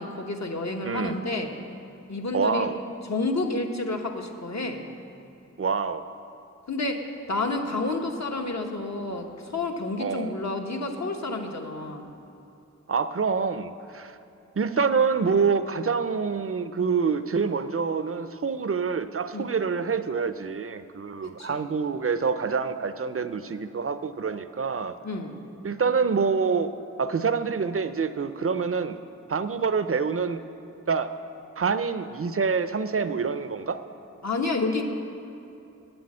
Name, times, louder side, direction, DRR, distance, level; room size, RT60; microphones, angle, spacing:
voice 1, 0.0-1.5 2.1-2.7 3.1-4.9 6.7-7.0 7.3-12.1 19.3-19.5 21.4-21.6 25.0-25.4 34.2-34.8, left 2 dB, 60° left, 3 dB, 1.1 m, -30 dB
voice 2, 0.8-1.2 2.3-2.8 5.6-6.0 10.0-10.3 12.9-14.2 14.6-25.0 25.6-26.7 27.0-29.0 29.3-30.4 30.9-31.1 31.6-33.8, right 5 dB, 45° right, 12 dB, 0.5 m, -26 dB
9.0 x 7.8 x 8.7 m, 2.8 s
wide cardioid pair, 50°, 31 cm